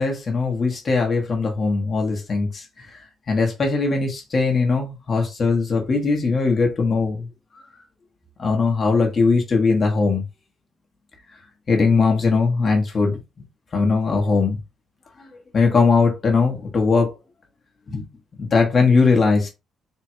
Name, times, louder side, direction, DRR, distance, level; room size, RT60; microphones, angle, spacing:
voice 1, 0.0-7.3 8.4-10.2 11.7-13.2 13.7-14.6 15.5-17.2 17.9-18.0 18.4-19.5, left 4 dB, 35° left, 1.0 m, -20 dB
3.6 x 2.3 x 4.4 m
cardioid pair, 150°, 0 cm